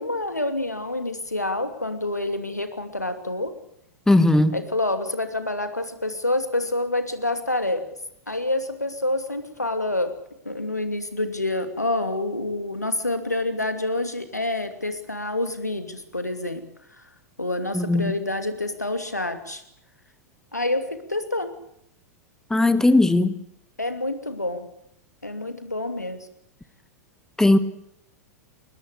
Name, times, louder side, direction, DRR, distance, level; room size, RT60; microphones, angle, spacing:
voice 1, 0.0-3.5 4.5-7.9 8.3-10.1 10.4-16.6 17.0-17.1 17.4-19.6 20.5-21.5 23.8-24.7 25.2-26.3, left 2 dB, 90° left, 8 dB, 2.8 m, -27 dB
voice 2, 4.1-4.5 17.7-18.1 22.5-23.3 27.4-27.6, left 2 dB, 5° left, 13 dB, 1.5 m, -18 dB
22.0 x 20.5 x 8.4 m, 0.74 s
figure-of-eight pair, 95°, 9 cm